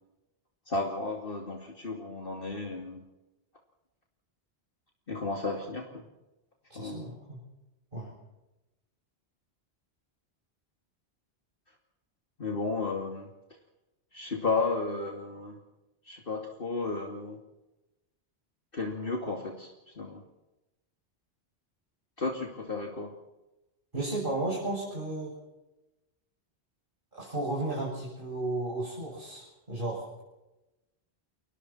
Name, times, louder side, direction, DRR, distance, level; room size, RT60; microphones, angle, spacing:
voice 1, 0.7-3.0 5.1-6.0 6.7-7.1 12.4-13.3 14.1-15.6 16.1-17.4 18.7-20.2 22.2-23.2, left 3 dB, 55° left, 1 dB, 2.8 m, -33 dB
voice 2, 6.7-7.4 7.9-8.1 23.9-25.3 27.1-30.2, right 2 dB, 50° right, -5 dB, 8.0 m, -34 dB
29.5 x 23.5 x 4.5 m, 0.99 s
omnidirectional pair, 1.1 m